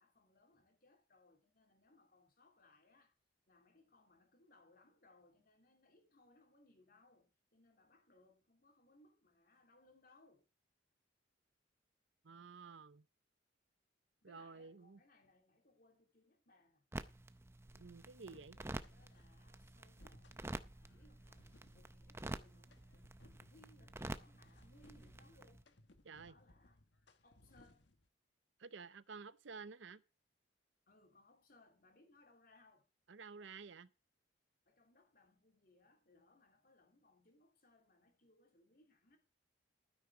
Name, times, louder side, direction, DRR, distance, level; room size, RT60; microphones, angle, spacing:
voice 1, 0.0-3.1 3.5-10.5 14.2-16.8 18.2-25.6 26.2-26.8 27.2-27.9 30.9-32.9 34.6-39.2, left 2 dB, 50° left, 3.2 m, -69 dB
voice 2, 12.2-13.0 14.2-15.0 17.7-18.6 26.0-26.3 28.6-30.0 33.1-33.9, right 5 dB, 75° right, 0.6 m, -52 dB
sound 1, 16.9-25.6, right 1 dB, 15° right, 0.5 m, -49 dB
sound 2, 18.3-19.4 19.8-28.1, left 1 dB, 65° left, 1.4 m, -67 dB
12.5 x 9.6 x 4.9 m
head